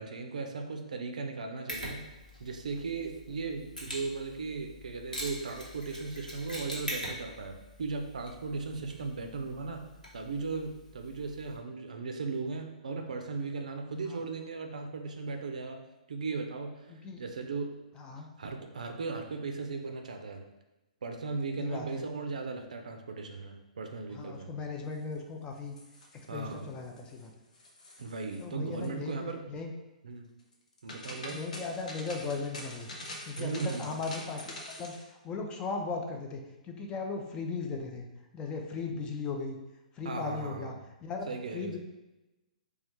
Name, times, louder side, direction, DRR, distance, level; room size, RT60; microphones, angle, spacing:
voice 1, 0.0-2.0 2.4-9.8 10.1-15.8 16.1-17.7 18.2-20.4 21.0-24.5 26.3-26.6 28.0-29.4 30.0-30.3 30.8-31.4 33.4-34.0 40.0-40.7 41.3-41.8, right 4 dB, 65° right, 5 dB, 0.5 m, -37 dB
Mechanisms, 1.7-11.6, equal, 90° left, 1.0 m, -44 dB
voice 2, 16.9-17.2 17.9-18.3 21.6-22.0 24.1-25.8 26.1-27.3 28.4-29.7 31.1-32.9 33.2-34.4 34.8-38.1 38.3-39.6 39.9-41.8, left 4 dB, 20° left, 2 dB, 0.4 m, -37 dB
sound 1, 25.6-26.5 26.8-27.3 27.5-28.4 28.7-28.9 30.5-35.0, left 1 dB, 65° left, 0.7 m, -45 dB
4.2 x 2.3 x 3.0 m, 1.0 s
figure-of-eight pair, 120°, 4 cm